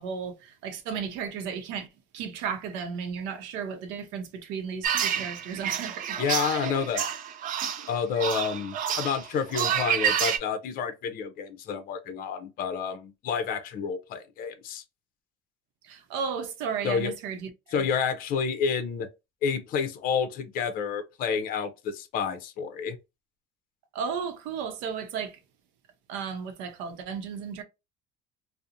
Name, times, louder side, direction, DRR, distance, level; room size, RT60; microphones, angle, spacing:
voice 1, 0.0-1.9 2.1-6.6 15.8-17.8 23.9-25.4 26.1-27.6, right 6 dB, 90° right, 0.6 m, -34 dB
sound 1, 4.8-10.4, right 9 dB, 50° right, 0.4 m, -29 dB
voice 2, 6.2-7.1 7.9-14.8 16.8-17.1 17.7-19.1 19.4-23.0, left 6 dB, 50° left, 0.5 m, -29 dB
2.4 x 2.0 x 2.7 m
cardioid pair, 130°, 18 cm